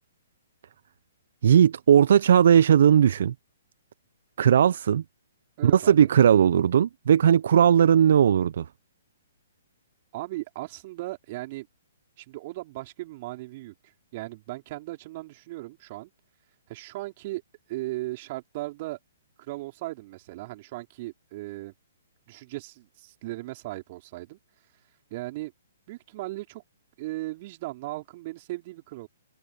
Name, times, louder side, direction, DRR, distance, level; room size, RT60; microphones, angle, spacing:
voice 1, 1.4-3.3 4.4-5.0 5.6-8.7, right 9 dB, 60° right, 0.8 m, -18 dB
voice 2, 5.6-6.1 10.1-11.7 12.2-13.7 14.1-16.1 16.7-17.4 17.7-19.0 19.4-21.7 22.3-24.4 25.1-25.5 25.9-26.6 27.0-29.1, right 19 dB, 40° right, 4.4 m, -37 dB
figure-of-eight pair, 125°, 0 cm